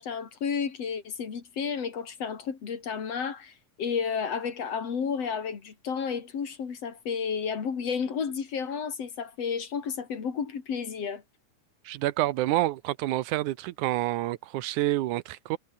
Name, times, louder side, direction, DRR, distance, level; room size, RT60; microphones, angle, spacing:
voice 1, 0.0-11.2, left 6 dB, 55° left, 3.8 m, -32 dB
voice 2, 11.9-15.6, right 16 dB, 80° right, 2.3 m, -28 dB
omnidirectional pair, 3.5 m